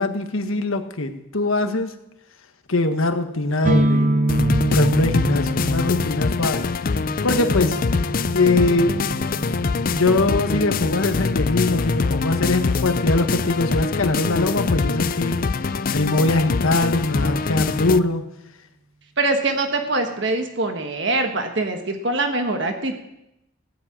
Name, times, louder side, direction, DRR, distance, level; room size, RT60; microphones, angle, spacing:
voice 1, 0.0-1.9 2.7-4.2 4.7-6.7 7.2-7.8 8.3-9.0 9.9-15.4 15.9-18.2, left 2 dB, 80° left, 7 dB, 1.4 m, -22 dB
sound 1, 3.6-11.3, right 1 dB, 35° right, 0.7 m, -26 dB
sound 2, 4.3-18.0, left 4 dB, 40° left, 0.4 m, -24 dB
voice 2, 19.2-23.0, right 2 dB, 55° right, 5 dB, 1.5 m, -23 dB
16.5 x 7.6 x 8.7 m, 0.87 s
head